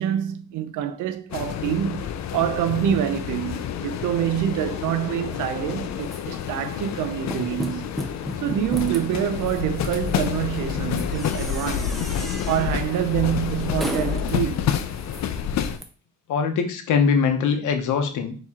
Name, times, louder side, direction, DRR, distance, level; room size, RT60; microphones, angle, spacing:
voice 1, 0.0-7.9 8.4-12.0 12.5-14.6, right 10 dB, 85° right, 0.5 m, -26 dB
sound 1, 1.3-15.8, left 8 dB, 65° left, 0.5 m, -29 dB
sound 2, 6.0-15.8, equal, ahead, 0.7 m, -37 dB
voice 2, 16.3-18.4, left 6 dB, 80° left, 0.9 m, -22 dB
4.2 x 3.0 x 3.6 m
cardioid pair, 90°, 30 cm